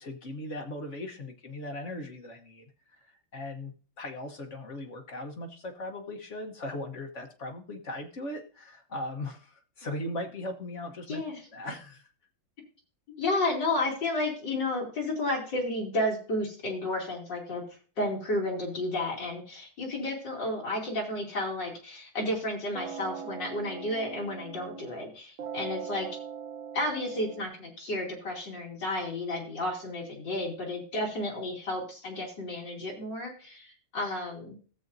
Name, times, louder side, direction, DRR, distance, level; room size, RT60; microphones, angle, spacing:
voice 1, 0.0-2.6 3.0-11.2 11.5-12.1, left 1 dB, 45° left, 4 dB, 1.1 m, -38 dB
voice 2, 11.1-11.4 13.2-17.6 18.0-26.1 26.7-34.5, left 1 dB, 65° left, -1 dB, 3.2 m, -32 dB
sound 1, 22.8-25.1 25.4-27.4, right 7 dB, 80° right, 0.7 m, -41 dB
16.0 x 7.4 x 2.6 m, 0.39 s
omnidirectional pair, 2.2 m